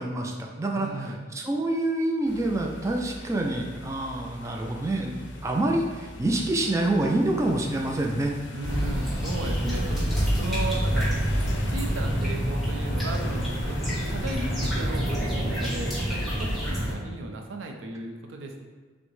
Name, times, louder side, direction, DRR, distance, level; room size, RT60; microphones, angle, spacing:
voice 1, 0.0-8.4, right 1 dB, 15° right, 1 dB, 0.3 m, -27 dB
voice 2, 0.7-1.2 8.5-11.1 11.5-18.6, right 2 dB, 90° right, 3 dB, 0.5 m, -36 dB
sound 1, 2.3-14.7, left 2 dB, 65° left, 0.5 m, -41 dB
sound 2, 8.6-16.9, equal, ahead, 1.1 m, -27 dB
6.0 x 2.1 x 3.1 m, 1.4 s
head